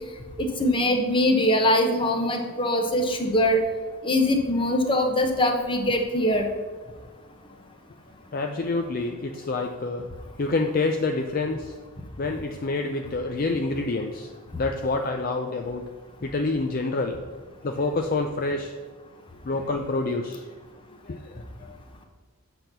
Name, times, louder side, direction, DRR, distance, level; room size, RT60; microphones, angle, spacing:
voice 1, 0.4-3.6 4.0-6.5, left 1 dB, 25° left, 4 dB, 1.0 m, -22 dB
voice 2, 8.3-10.1 10.4-11.7 12.2-14.3 14.6-15.8 16.2-17.2 17.6-18.7 19.4-20.4 21.0-21.4, left 3 dB, 40° left, 4 dB, 0.5 m, -27 dB
7.7 x 4.4 x 6.6 m, 1.4 s
head